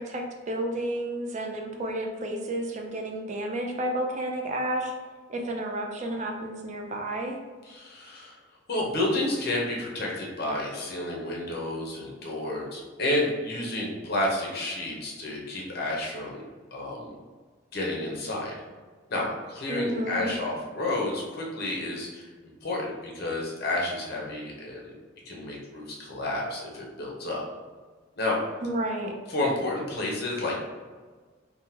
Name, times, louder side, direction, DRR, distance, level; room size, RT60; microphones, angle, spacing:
voice 1, 0.0-4.9 5.3-7.4 19.7-20.3 28.6-29.1, right 1 dB, 40° right, 2 dB, 0.4 m, -31 dB
voice 2, 7.7-8.4 8.7-16.4 16.7-17.1 17.7-18.5 19.1-22.3 22.6-24.8 25.3-27.4 28.2-28.4 29.3-30.6, left 1 dB, 55° left, -2 dB, 0.7 m, -30 dB
3.5 x 2.1 x 2.8 m, 1.4 s
head